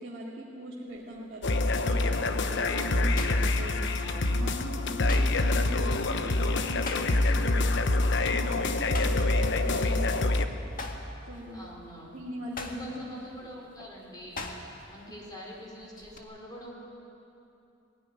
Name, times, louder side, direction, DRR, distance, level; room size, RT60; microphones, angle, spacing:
voice 1, 0.0-10.6 11.3-11.6 12.1-12.9 15.2-15.3, equal, 45° right, -6 dB, 2.5 m, -42 dB
sound 1, 0.9-1.2 1.8-4.3 4.6-7.5 7.8-8.0 8.4-10.3 10.6-15.0 15.3-16.2, left 3 dB, 45° left, 1.8 m, -42 dB
sound 2, 1.4-10.5, left 2 dB, 65° left, 1.0 m, -26 dB
voice 2, 2.7-3.1 4.0-4.7 9.3-10.1 11.5-12.2 12.6-14.6 14.9-16.7, equal, 20° left, -3 dB, 4.4 m, -46 dB
20.5 x 16.0 x 9.8 m, 2.7 s
head